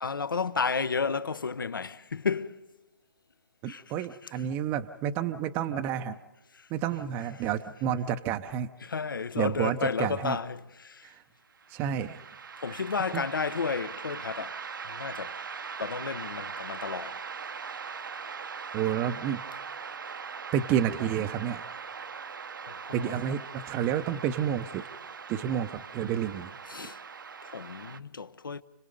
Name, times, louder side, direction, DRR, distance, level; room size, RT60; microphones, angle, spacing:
voice 1, 0.0-2.6 3.7-3.8 6.5-6.7 8.8-11.1 12.6-15.4 15.8-17.3 22.6-23.2 26.7-27.0 27.4-28.6, left 5 dB, 80° left, 1.2 m, -32 dB
voice 2, 3.6-6.2 6.7-8.7 9.4-10.4 11.0-11.2 11.7-12.2 12.7-12.8 13.1-13.3 18.7-19.4 20.5-21.6 22.9-24.9 25.3-26.5, right 9 dB, 20° right, 0.6 m, -30 dB
sound 1, 11.6-28.0, right 6 dB, 70° right, 0.9 m, -41 dB
30.0 x 18.5 x 5.3 m
hypercardioid pair, 150°, 11 cm